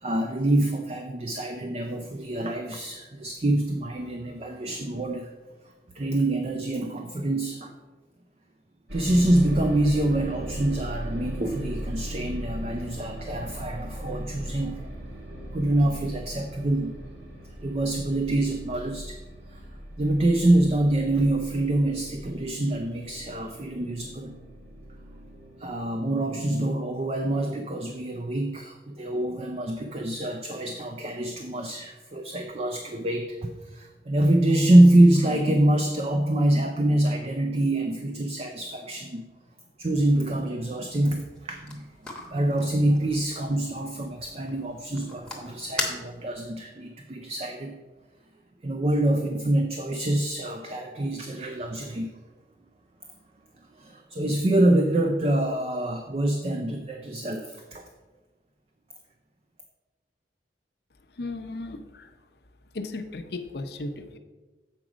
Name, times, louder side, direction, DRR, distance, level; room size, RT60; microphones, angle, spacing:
voice 1, 0.0-5.3 5.9-7.7 8.9-15.0 15.5-17.0 17.6-19.2 19.5-19.6 20.0-24.4 25.6-39.2 39.8-47.8 48.6-52.1 53.7-57.9, right 1 dB, 35° right, 5 dB, 0.4 m, -25 dB
sound 1, 8.9-25.9, equal, 65° right, 1.3 m, -38 dB
sound 2, 41.3-46.5, left 2 dB, 5° left, 1.0 m, -38 dB
voice 2, 61.2-62.1 62.7-64.2, left 2 dB, 65° left, 6 dB, 0.6 m, -35 dB
7.4 x 4.8 x 5.0 m, 1.3 s
head